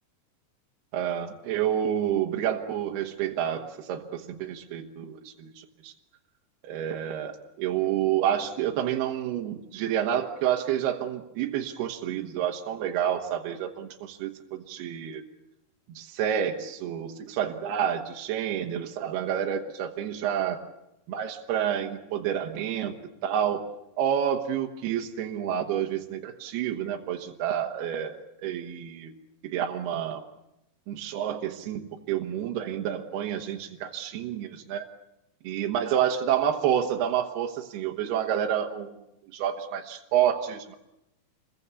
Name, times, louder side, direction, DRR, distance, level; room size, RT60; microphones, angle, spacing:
voice 1, 0.9-5.9 6.6-15.2 15.9-20.6 21.1-22.9 23.2-23.6 24.0-29.1 29.4-30.2 30.9-34.8 35.4-38.9 39.3-40.8, right 9 dB, 75° right, 3 dB, 3.3 m, -29 dB
28.0 x 21.0 x 8.3 m, 0.88 s
omnidirectional pair, 4.6 m